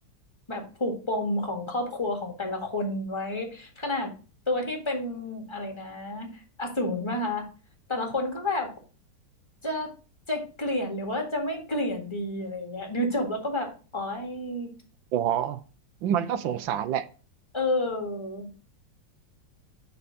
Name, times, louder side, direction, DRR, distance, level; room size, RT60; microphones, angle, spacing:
voice 1, 0.5-4.1 4.5-7.5 7.9-8.7 9.6-9.9 10.3-14.7 17.5-18.5, left 1 dB, 15° left, 1.6 m, -30 dB
voice 2, 15.1-15.6 16.0-17.1, right 9 dB, 75° right, 1.4 m, -27 dB
6.5 x 5.5 x 4.9 m
omnidirectional pair, 2.2 m